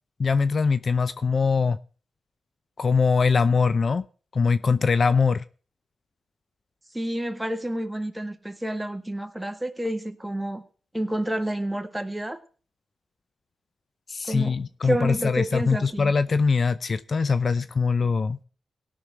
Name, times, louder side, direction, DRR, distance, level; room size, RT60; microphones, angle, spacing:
voice 1, 0.2-1.8 2.8-4.0 4.3-5.4 14.1-18.4, left 5 dB, 55° left, 0.6 m, -22 dB
voice 2, 6.9-10.6 10.9-12.4 14.3-14.6 14.8-16.1, right 1 dB, 15° right, 1.8 m, -29 dB
17.5 x 6.3 x 5.0 m
supercardioid pair, 45°, 0 cm